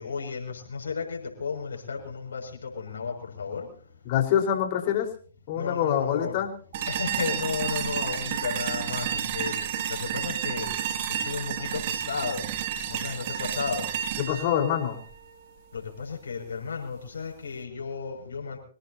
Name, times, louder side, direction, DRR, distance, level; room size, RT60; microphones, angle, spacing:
voice 1, 0.0-4.1 5.5-6.4 6.9-14.0 15.7-18.6, left 5 dB, 85° left, 1 dB, 6.8 m, -34 dB
voice 2, 4.1-5.1 5.5-6.5 14.2-15.0, left 9 dB, 50° left, 3 dB, 4.7 m, -25 dB
sound 1, 6.7-15.8, right 9 dB, 50° right, 2.7 m, -31 dB
26.0 x 18.0 x 2.9 m, 0.43 s
hypercardioid pair, 135°, 0 cm